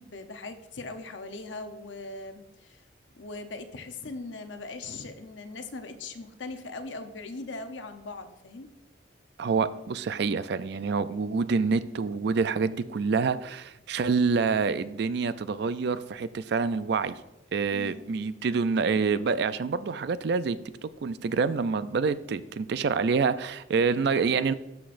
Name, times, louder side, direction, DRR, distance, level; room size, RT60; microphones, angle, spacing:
voice 1, 0.0-2.8 3.1-8.7 17.7-18.1, left 3 dB, 70° left, 7 dB, 0.8 m, -40 dB
voice 2, 9.4-17.1 17.5-24.5, right 5 dB, 60° right, 14 dB, 0.4 m, -27 dB
12.5 x 6.0 x 2.5 m, 0.97 s
head